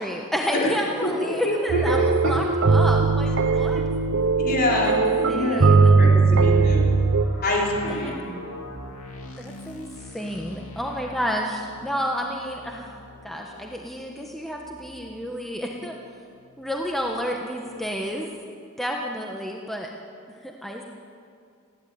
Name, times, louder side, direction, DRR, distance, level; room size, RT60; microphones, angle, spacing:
voice 1, 0.0-3.8 4.7-4.8 5.2-6.0 7.9-8.1 9.4-9.9 10.1-15.9 16.6-18.3 18.8-19.9 20.4-20.8, equal, ahead, 0 dB, 1.3 m, -30 dB
voice 2, 0.5-2.4 4.4-6.9 7.4-8.2, left 1 dB, 45° left, -2 dB, 4.3 m, -26 dB
sound 1, 1.7-7.2, right 4 dB, 60° right, 0.8 m, -19 dB
sound 2, 6.3-16.0 16.4-16.5 17.0-17.2, equal, 75° left, 2.5 m, -37 dB
18.5 x 15.5 x 9.4 m, 2.3 s
head